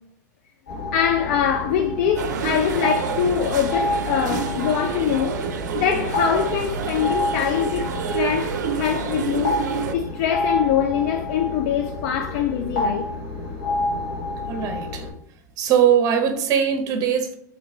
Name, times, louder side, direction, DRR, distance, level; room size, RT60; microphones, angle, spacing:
sound 1, 0.7-15.1, left 2 dB, 70° left, 1.4 m, -29 dB
voice 1, 0.9-5.4 5.7-7.9 8.1-9.6 9.9-13.1, left 8 dB, 55° left, 0.4 m, -23 dB
sound 2, 2.2-9.9, right 7 dB, 75° right, 0.4 m, -28 dB
voice 2, 14.5-15.1 15.6-17.4, right 8 dB, 40° right, 0.7 m, -20 dB
3.0 x 3.0 x 3.8 m
hypercardioid pair, 110°, 10 cm